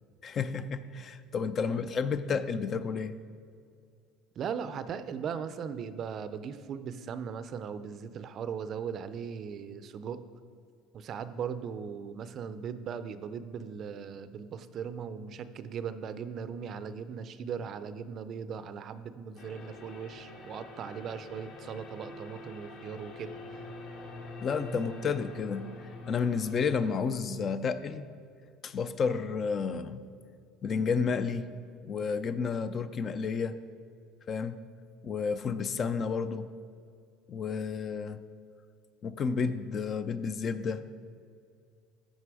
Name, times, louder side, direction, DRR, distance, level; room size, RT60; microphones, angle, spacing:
voice 1, 0.2-3.1 24.4-25.7 26.1-28.0 28.6-30.0 30.6-31.5 31.8-33.6 34.3-34.6 35.0-36.5 37.3-38.2 39.0-40.8, left 5 dB, 35° left, 13 dB, 0.4 m, -31 dB
voice 2, 4.4-10.2 10.9-23.6, right 7 dB, 40° right, 12 dB, 0.5 m, -38 dB
sound 1, 19.3-26.9, left 2 dB, 55° left, 2.1 m, -45 dB
14.0 x 5.3 x 4.8 m, 2.2 s
cardioid pair, 140°, 0 cm